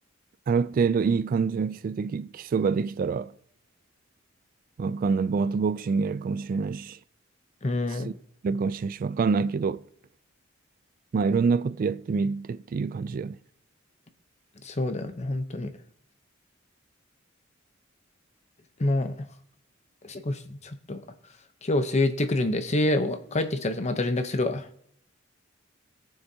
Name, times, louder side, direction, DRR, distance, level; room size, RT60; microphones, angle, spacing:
voice 1, 0.5-3.3 4.8-7.0 7.9-8.1 8.4-9.8 11.1-13.4, right 5 dB, 45° right, 0.3 m, -26 dB
voice 2, 7.6-8.1 14.6-15.7 18.8-19.2 20.0-21.0 21.6-24.7, left 2 dB, 35° left, 0.8 m, -27 dB
18.5 x 6.9 x 2.8 m
head